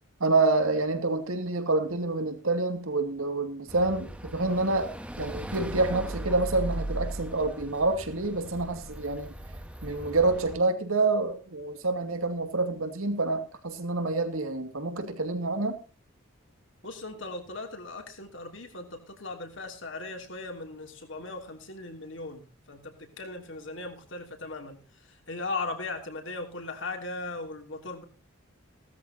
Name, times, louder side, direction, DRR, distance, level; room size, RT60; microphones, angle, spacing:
voice 1, 0.2-4.9 5.2-9.3 9.8-15.8, right 3 dB, 85° right, 7 dB, 2.4 m, -27 dB
sound 1, 3.7-10.6, right 1 dB, 5° right, 1.3 m, -38 dB
voice 2, 16.8-24.8 25.1-28.0, left 3 dB, 60° left, 4 dB, 3.1 m, -38 dB
17.0 x 13.5 x 2.9 m, 0.33 s
head